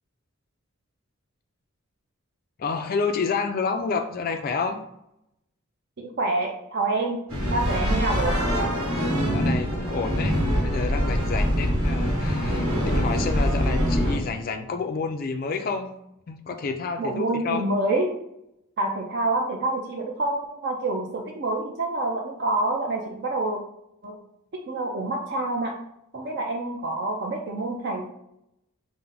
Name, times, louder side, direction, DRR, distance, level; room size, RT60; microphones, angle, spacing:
voice 1, 2.6-4.8 9.3-15.9 16.3-17.7, left 4 dB, 45° left, 5 dB, 0.3 m, -29 dB
voice 2, 6.0-7.2 7.5-8.4 17.0-18.1 18.8-23.6 24.0-24.2 24.7-25.8 26.1-28.1, right 2 dB, 50° right, 1 dB, 0.5 m, -27 dB
sound 1, 7.3-14.2, equal, 80° right, 1.5 m, -24 dB
5.7 x 2.1 x 3.8 m, 0.80 s
head